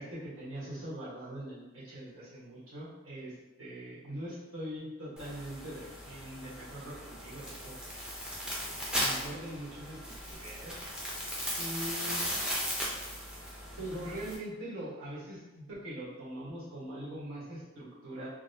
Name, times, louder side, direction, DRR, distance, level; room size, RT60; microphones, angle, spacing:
voice 1, 0.0-7.8 8.6-10.8 11.6-12.2 13.8-18.3, right 1 dB, 80° right, -9 dB, 1.3 m, -42 dB
sound 1, 5.2-14.3, equal, 5° right, 0.5 m, -37 dB
3.9 x 2.1 x 2.6 m, 1.1 s
head